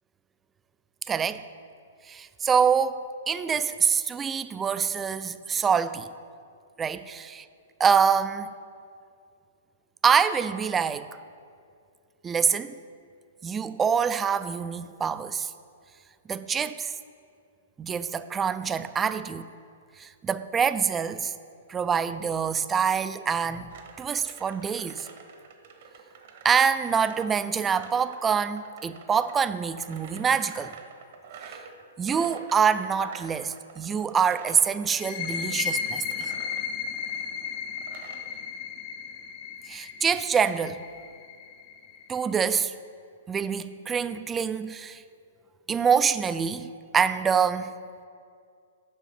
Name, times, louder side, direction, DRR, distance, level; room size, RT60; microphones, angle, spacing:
voice 1, 1.1-1.4 2.1-6.1 6.8-7.3 7.8-8.5 10.0-11.1 12.2-12.8 13.4-15.5 16.3-16.9 17.8-19.4 20.0-21.3 21.7-23.7 24.0-25.1 26.4-30.7 31.4-31.5 32.0-36.3 39.7-40.8 42.1-42.7 43.3-45.0 45.7-46.7 46.9-47.7, right 6 dB, 15° right, 13 dB, 0.3 m, -25 dB
sound 1, 23.7-38.3, right 6 dB, 60° right, 1.0 m, -48 dB
sound 2, 34.9-42.3, left 7 dB, 35° left, 0.6 m, -34 dB
7.3 x 5.4 x 5.7 m, 2.3 s
hypercardioid pair, 130°, 0 cm